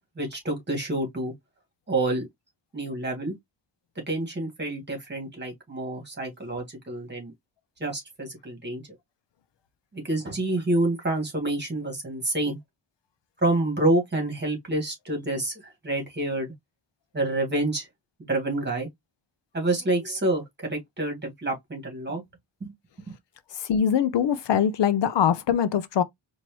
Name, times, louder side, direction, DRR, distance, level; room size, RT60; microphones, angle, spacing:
voice 1, 0.2-1.3 1.9-2.3 2.7-3.3 4.1-7.3 7.8-8.8 9.9-12.6 13.4-16.5 17.1-17.9 18.3-18.9 19.5-22.2 22.6-22.7, right 2 dB, 20° right, 1.8 m, -28 dB
voice 2, 23.7-26.0, left 8 dB, 65° left, 0.6 m, -22 dB
4.6 x 2.7 x 3.0 m
wide cardioid pair, 180°, 46 cm